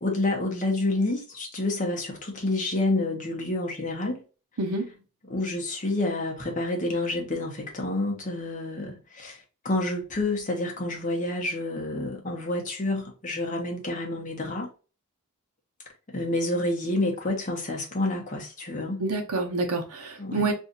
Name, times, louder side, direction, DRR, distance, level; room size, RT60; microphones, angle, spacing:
voice 1, 0.0-4.2 5.2-14.7 16.1-19.0 20.2-20.5, left 2 dB, 35° left, 0.8 m, -29 dB
voice 2, 19.0-20.5, right 3 dB, 85° right, 0.8 m, -27 dB
2.6 x 2.4 x 3.9 m
head